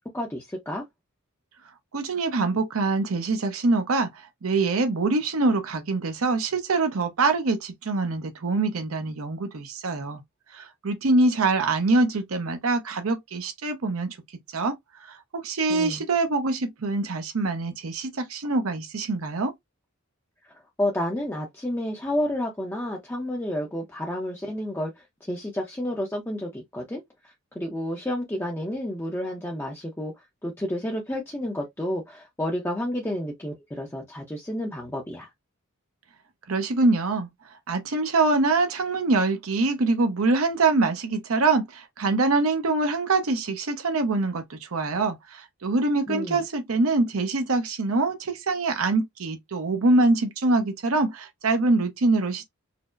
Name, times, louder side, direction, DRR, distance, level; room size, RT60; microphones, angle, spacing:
voice 1, 0.1-0.8 15.7-16.0 20.8-27.0 27.5-30.1 30.4-35.3 46.1-46.4, left 1 dB, 10° left, 0.6 m, -30 dB
voice 2, 1.9-10.2 10.5-14.2 14.5-14.8 15.0-19.5 36.5-37.3 37.7-52.5, right 3 dB, 80° right, 0.7 m, -24 dB
4.3 x 2.0 x 2.5 m
head